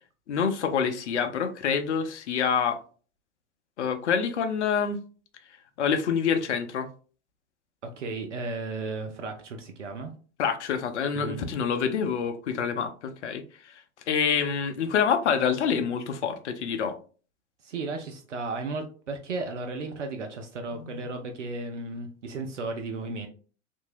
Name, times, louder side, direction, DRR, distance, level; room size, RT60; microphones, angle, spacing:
voice 1, 0.3-2.8 3.8-5.0 5.8-6.9 10.4-13.7 14.1-17.0 20.7-21.0, left 7 dB, 75° left, 0.6 m, -27 dB
voice 2, 7.8-10.1 11.1-11.5 17.6-23.3, right 3 dB, 85° right, 0.5 m, -34 dB
2.8 x 2.6 x 2.4 m
figure-of-eight pair, 90°, 35 cm